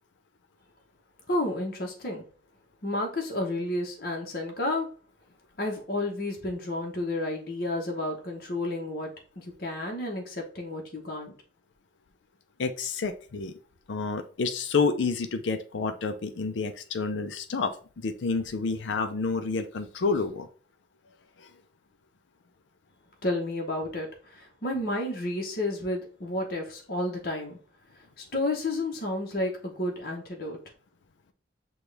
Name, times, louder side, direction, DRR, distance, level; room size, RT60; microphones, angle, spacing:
voice 1, 1.3-2.2 2.8-4.9 5.6-11.3 23.2-27.6 28.2-30.6, left 1 dB, 55° left, 1.0 m, -31 dB
voice 2, 12.6-13.5 13.9-20.5 21.4-21.5, left 4 dB, 85° left, 0.5 m, -29 dB
6.0 x 2.3 x 3.3 m
head